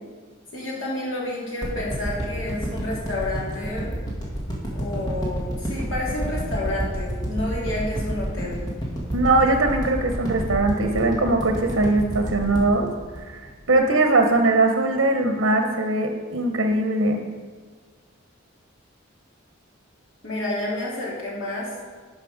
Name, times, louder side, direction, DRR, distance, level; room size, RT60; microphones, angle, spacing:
voice 1, 0.5-3.9 4.7-8.6 20.2-21.7, left 1 dB, 80° left, -6 dB, 3.2 m, -29 dB
sound 1, 1.6-13.9 14.4-14.5, equal, 20° left, 1.9 m, -29 dB
voice 2, 9.1-12.9 13.2-17.3, right 2 dB, 75° right, 4 dB, 0.9 m, -21 dB
11.5 x 5.5 x 5.1 m, 1.5 s
head